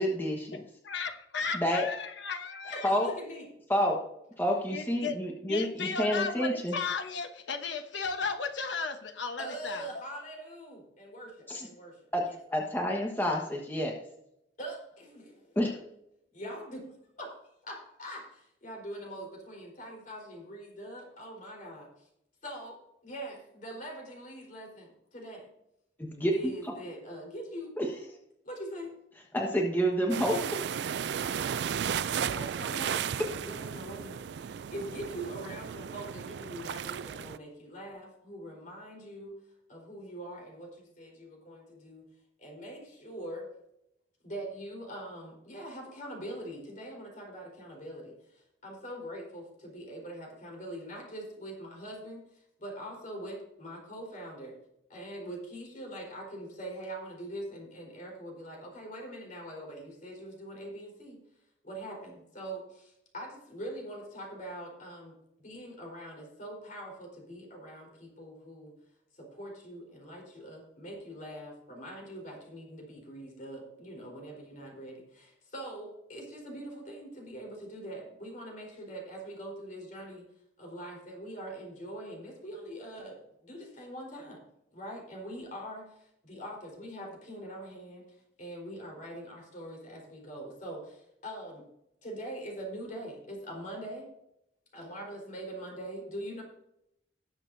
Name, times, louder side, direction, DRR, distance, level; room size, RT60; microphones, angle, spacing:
voice 1, 0.0-0.6 1.5-1.9 2.8-3.1 3.7-4.0 4.4-6.7 11.5-11.7 12.1-12.2 12.5-13.9 15.5-15.7 26.0-26.5 27.8-27.9 29.3-30.6, equal, 10° left, 0 dB, 1.3 m, -28 dB
voice 2, 0.5-2.9 4.7-9.9, left 5 dB, 85° left, 6 dB, 1.1 m, -35 dB
voice 3, 2.6-3.5 9.4-12.0 12.3-12.6 14.6-15.6 16.3-16.9 17.2-17.3 17.6-22.1 22.4-25.5 26.3-27.8 28.4-28.9 32.1-33.0 33.3-39.4 39.7-42.0 42.4-43.5 44.2-54.6 54.9-61.2 61.6-68.7 69.1-80.3 80.6-84.4 84.7-91.6 92.0-94.1 94.7-96.4, right 1 dB, 45° left, 0 dB, 4.2 m, -43 dB
sound 1, 30.1-37.4, right 8 dB, 70° right, 0.3 m, -34 dB
18.5 x 7.3 x 2.7 m, 0.79 s
head